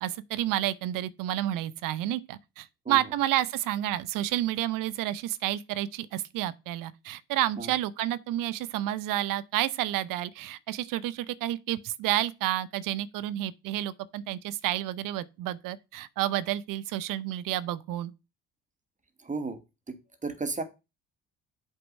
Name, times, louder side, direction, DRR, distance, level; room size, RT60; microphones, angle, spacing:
voice 1, 0.0-18.1, right 13 dB, 65° right, 0.7 m, -30 dB
voice 2, 19.2-19.6 19.9-20.0 20.2-20.6, right 3 dB, 20° right, 1.5 m, -33 dB
8.0 x 2.9 x 5.2 m
supercardioid pair, 65°, 35 cm